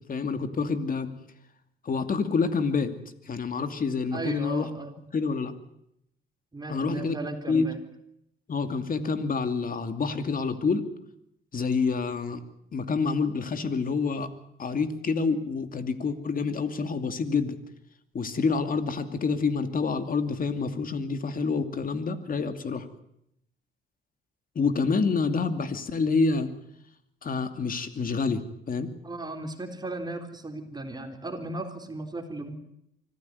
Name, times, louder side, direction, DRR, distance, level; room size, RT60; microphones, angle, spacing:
voice 1, 0.1-1.1 1.8-2.9 3.3-4.7 5.1-5.5 6.7-7.2 7.5-7.7 8.5-10.9 11.5-12.4 12.7-14.3 14.6-17.6 18.1-22.9 24.5-26.5 27.2-28.9, left 4 dB, 45° left, 9 dB, 2.6 m, -27 dB
voice 2, 4.1-5.0 6.5-7.8 29.0-32.6, right 2 dB, 20° right, 5 dB, 3.8 m, -36 dB
25.0 x 15.0 x 9.6 m, 0.79 s
cardioid pair, 90°, 20 cm